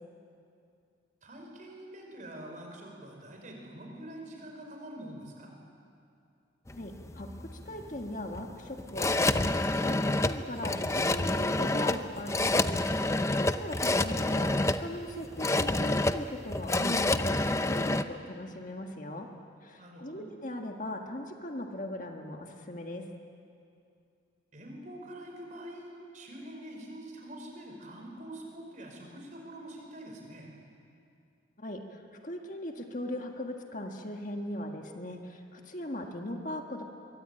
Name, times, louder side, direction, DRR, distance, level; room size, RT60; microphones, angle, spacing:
voice 1, 1.2-5.5 13.6-14.0 19.8-20.3 24.5-30.5, right 1 dB, 40° right, 1 dB, 5.2 m, -45 dB
voice 2, 6.7-9.5 9.8-17.4 17.7-19.3 19.6-23.0 31.6-36.8, left 1 dB, 40° left, 3 dB, 1.7 m, -39 dB
sound 1, 6.7-18.0, left 2 dB, 15° left, 0.6 m, -28 dB
23.5 x 23.0 x 9.0 m, 2.5 s
head